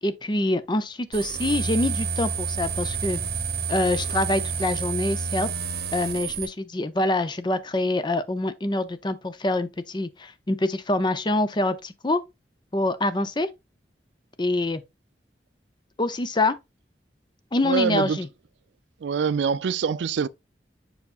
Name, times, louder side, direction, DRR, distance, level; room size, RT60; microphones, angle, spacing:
voice 1, 0.0-3.2 3.7-5.5 5.9-12.2 12.7-13.5 14.4-14.8 16.0-16.6 17.5-18.3, left 2 dB, 25° left, 0.6 m, -25 dB
sound 1, 1.1-6.5, right 5 dB, 60° right, 0.9 m, -29 dB
voice 2, 17.6-18.2 19.0-20.3, right 6 dB, 80° right, 0.4 m, -24 dB
7.1 x 5.5 x 2.5 m
head